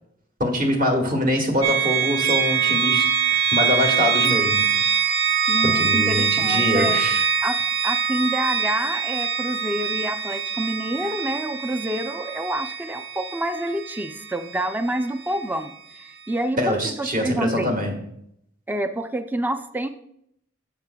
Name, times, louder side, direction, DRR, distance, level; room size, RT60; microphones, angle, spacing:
voice 1, 0.4-3.1 3.3-4.7 5.6-7.2 16.6-18.0, left 1 dB, 45° right, 2 dB, 1.5 m, -24 dB
sound 1, 1.6-15.4, right 6 dB, 70° right, 1.1 m, -24 dB
voice 2, 5.5-7.0 7.4-7.6 7.8-17.8 18.7-19.9, right 1 dB, 10° right, 9 dB, 0.3 m, -27 dB
10.5 x 7.5 x 2.2 m, 0.73 s
head